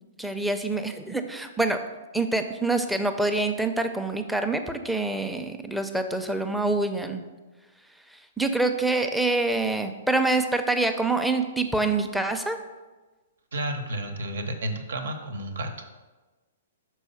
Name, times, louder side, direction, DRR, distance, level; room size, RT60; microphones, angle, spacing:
voice 1, 0.2-1.8 2.1-7.3 8.4-12.6, right 2 dB, ahead, 6 dB, 0.5 m, -26 dB
voice 2, 13.5-15.7, right 1 dB, 85° right, 7 dB, 1.0 m, -31 dB
6.2 x 4.4 x 5.6 m, 1.2 s
hypercardioid pair, 140°, 0 cm